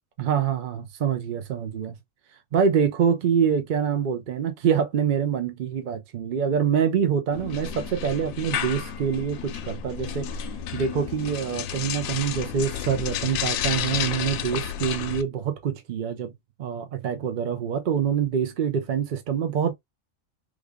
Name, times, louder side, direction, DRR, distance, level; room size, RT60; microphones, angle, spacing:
voice 1, 0.2-2.0 2.5-16.3 16.6-19.7, right 7 dB, 55° right, 0.6 m, -25 dB
sound 1, 7.3-15.2, left 9 dB, 80° left, 1.0 m, -31 dB
3.4 x 2.3 x 3.5 m
omnidirectional pair, 1.4 m